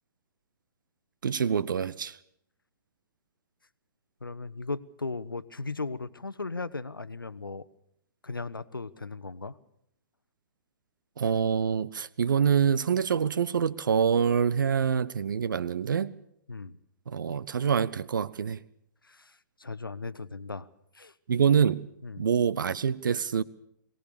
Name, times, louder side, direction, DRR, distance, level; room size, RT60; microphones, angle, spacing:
voice 1, 1.2-2.2 11.2-16.2 17.1-18.6 21.3-21.8 22.2-23.4, right 7 dB, 65° right, 18 dB, 0.7 m, -26 dB
voice 2, 4.2-7.7 8.2-9.6 16.5-16.8 19.0-20.7 20.9-21.1 22.0-22.3, left 3 dB, 85° left, 16 dB, 1.0 m, -37 dB
23.0 x 18.5 x 7.0 m, 0.73 s
figure-of-eight pair, 120°, 11 cm